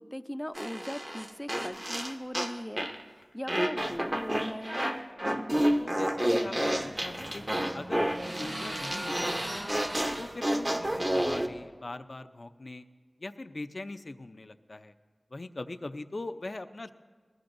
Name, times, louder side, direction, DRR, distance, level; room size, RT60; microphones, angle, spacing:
voice 1, 0.0-4.9, equal, 10° left, 10 dB, 0.5 m, -39 dB
sound 1, 0.6-3.0 3.5-11.5, right 1 dB, 35° right, 0.9 m, -30 dB
voice 2, 5.8-9.7 10.2-12.8 13.2-14.9 15.3-16.9, left 2 dB, 65° left, 9 dB, 0.5 m, -41 dB
sound 2, 6.1-11.6, right 1 dB, 70° right, 5.0 m, -40 dB
20.5 x 14.5 x 2.6 m, 1.5 s
wide cardioid pair, 40°, 0 cm